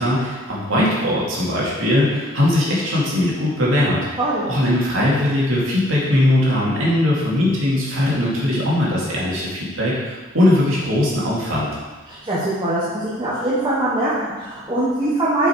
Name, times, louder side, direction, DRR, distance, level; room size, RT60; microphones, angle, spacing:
voice 1, 0.0-4.0 4.5-11.7, left 1 dB, 80° right, -6 dB, 2.4 m, -20 dB
voice 2, 12.1-15.5, right 1 dB, 20° right, -9 dB, 1.2 m, -22 dB
6.9 x 5.3 x 4.6 m, 1.3 s
head